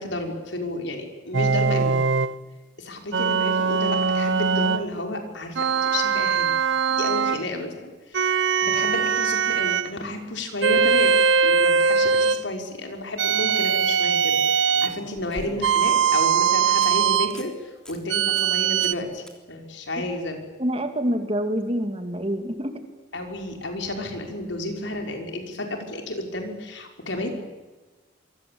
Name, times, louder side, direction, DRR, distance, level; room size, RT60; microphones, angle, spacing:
voice 1, 0.0-2.0 2.8-6.5 6.9-8.3 8.6-11.2 11.4-20.4 23.1-27.3, left 1 dB, 75° left, 3 dB, 5.9 m, -32 dB
sound 1, 1.3-2.4 3.1-4.9 5.5-7.4 8.1-9.9 10.6-12.4 13.2-15.0 15.6-17.3 18.1-18.9, right 6 dB, 80° right, 1.1 m, -21 dB
sound 2, 13.0-13.2 14.6-15.9 16.4-16.5 16.8-16.9 17.2-17.5 17.9-18.0 18.4-18.5 18.8-19.0 19.3-19.4 22.5-22.6, equal, 5° left, 3.3 m, -43 dB
voice 2, 20.6-22.9, equal, 30° right, 7 dB, 2.6 m, -26 dB
27.0 x 23.5 x 8.8 m, 1.2 s
head